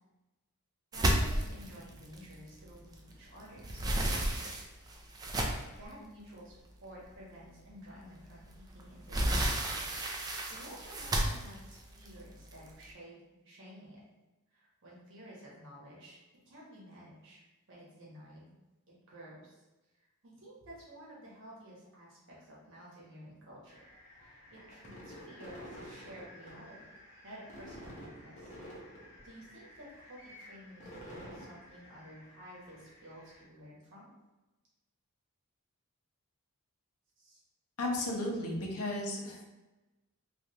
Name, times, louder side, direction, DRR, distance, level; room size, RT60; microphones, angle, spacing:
sound 1, 0.9-3.1 3.4-5.8 6.5-6.6 7.0-7.1 8.5-12.8, right 1 dB, 15° right, 0.3 m, -32 dB
voice 1, 0.9-4.5 5.7-9.7 10.2-13.2 13.4-14.0 14.5-16.2 16.5-17.4 17.7-18.5 19.1-19.6 19.9-23.8 24.2-26.8 27.2-28.5 29.2-34.1 37.2-37.4, equal, 60° right, -5 dB, 1.1 m, -52 dB
sound 2, 23.7-33.4, equal, 30° left, 0.8 m, -51 dB
voice 2, 37.8-39.4, left 1 dB, 80° left, 0 dB, 0.7 m, -34 dB
3.3 x 2.5 x 2.8 m, 1.1 s
head